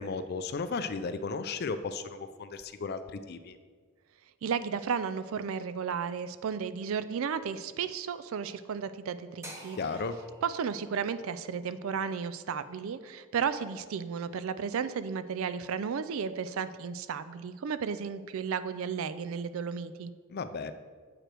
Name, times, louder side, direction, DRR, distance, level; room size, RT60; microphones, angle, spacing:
voice 1, 0.0-3.6 9.8-10.2 20.3-20.7, left 4 dB, 50° left, 11 dB, 0.4 m, -35 dB
voice 2, 4.4-9.8 10.4-20.1, right 6 dB, 70° right, 13 dB, 0.4 m, -33 dB
sound 1, 9.4-13.5, equal, 15° right, 0.9 m, -51 dB
7.7 x 4.9 x 4.5 m, 1.5 s
head